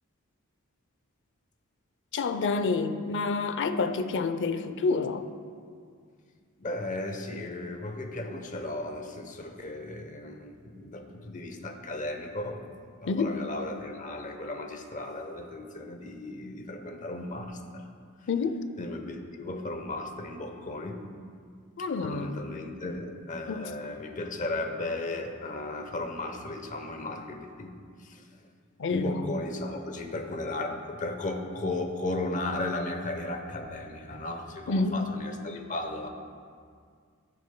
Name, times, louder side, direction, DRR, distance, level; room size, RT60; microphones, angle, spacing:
voice 1, 2.1-5.2 13.1-13.3 18.3-18.6 21.8-22.3 23.5-23.7 28.8-29.1 34.7-35.0, left 4 dB, 60° left, 9 dB, 0.5 m, -28 dB
voice 2, 6.6-12.6 13.0-17.9 18.8-21.0 22.0-27.7 28.0-28.2 28.9-36.1, left 2 dB, 35° left, 4 dB, 0.9 m, -35 dB
17.5 x 6.4 x 2.2 m, 2.1 s
head